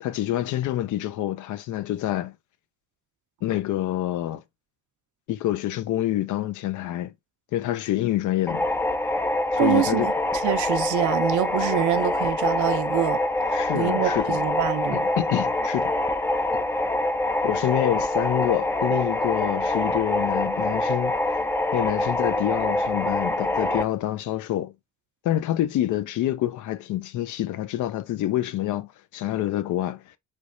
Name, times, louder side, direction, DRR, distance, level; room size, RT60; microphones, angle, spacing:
voice 1, 0.0-2.3 3.4-4.4 5.3-7.1 7.5-8.7 9.5-10.1 13.5-14.4 14.9-15.9 17.4-21.2 21.7-24.7 25.2-30.0, left 13 dB, 75° left, 0.5 m, -27 dB
sound 1, 8.5-23.8, left 2 dB, 10° left, 0.3 m, -25 dB
voice 2, 9.6-13.2 13.7-15.0, right 12 dB, 75° right, 0.7 m, -25 dB
3.4 x 3.1 x 2.4 m
cardioid pair, 90°, 30 cm